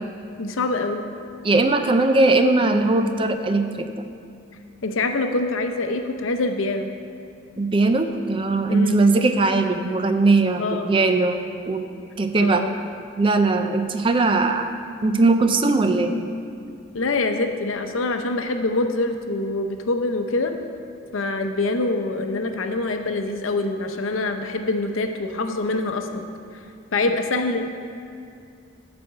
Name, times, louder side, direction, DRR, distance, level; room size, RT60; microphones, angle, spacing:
voice 1, 0.4-1.0 4.8-6.9 8.7-9.0 10.6-11.0 12.4-12.8 16.9-20.6 21.1-26.3 26.9-27.6, left 2 dB, 90° left, 6 dB, 0.7 m, -25 dB
voice 2, 1.4-3.9 7.6-11.4 11.7-11.9 12.2-12.6 13.2-14.7 15.0-16.2, right 3 dB, 25° right, 7 dB, 0.4 m, -19 dB
9.2 x 4.3 x 7.4 m, 2.4 s
head